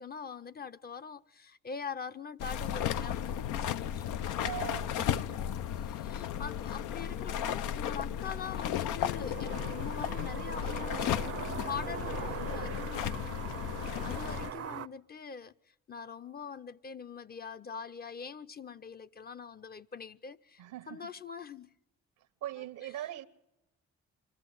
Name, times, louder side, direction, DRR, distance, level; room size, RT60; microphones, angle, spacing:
voice 1, 0.0-4.3 5.0-5.5 5.8-11.2 11.7-15.5 15.9-21.7, left 6 dB, 30° left, 0.6 m, -43 dB
sound 1, 2.4-14.5, left 10 dB, 85° left, 0.6 m, -34 dB
voice 2, 4.4-5.4 20.6-21.0 22.4-23.3, right 12 dB, 85° right, 1.1 m, -40 dB
sound 2, 9.1-14.9, right 11 dB, 55° right, 0.6 m, -41 dB
25.0 x 14.5 x 7.8 m
cardioid pair, 90°, 30 cm